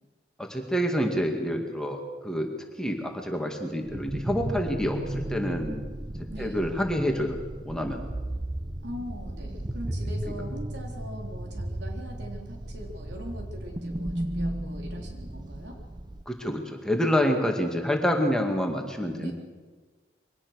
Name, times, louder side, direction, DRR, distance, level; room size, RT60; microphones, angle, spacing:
voice 1, 0.4-2.5 2.8-5.8 6.4-7.4 7.7-8.0 16.3-19.3, equal, 5° left, 2 dB, 2.1 m, -27 dB
sound 1, 3.9-16.2, right 1 dB, 25° right, 0.8 m, -35 dB
voice 2, 6.3-6.6 8.8-15.8 19.2-19.3, equal, 85° right, 2 dB, 3.6 m, -41 dB
23.0 x 18.0 x 6.5 m, 1.4 s
head